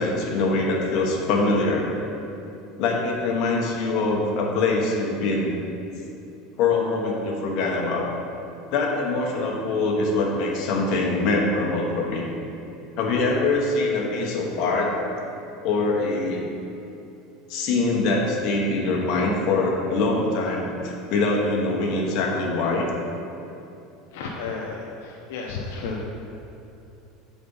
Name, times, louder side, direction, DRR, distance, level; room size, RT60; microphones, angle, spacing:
voice 1, 0.0-1.9 2.8-5.5 6.6-8.1 8.7-12.2 13.0-14.9 15.6-16.4 17.5-22.9, left 3 dB, 55° left, -1 dB, 1.2 m, -23 dB
voice 2, 24.1-26.0, left 4 dB, 80° left, -1 dB, 0.7 m, -32 dB
7.8 x 4.2 x 5.5 m, 2.8 s
supercardioid pair, 140°, 0 cm